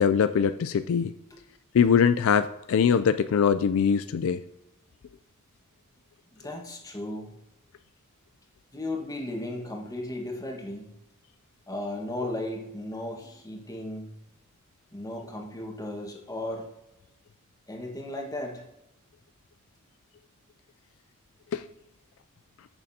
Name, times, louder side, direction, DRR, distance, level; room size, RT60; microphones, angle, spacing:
voice 1, 0.0-1.1 1.7-4.4 21.5-21.7, left 7 dB, 65° left, 11 dB, 0.4 m, -22 dB
voice 2, 6.3-7.3 8.7-10.9 11.7-14.1 14.9-16.7 17.7-18.7, left 1 dB, 15° left, 1 dB, 1.5 m, -35 dB
14.5 x 6.6 x 2.8 m, 0.86 s
head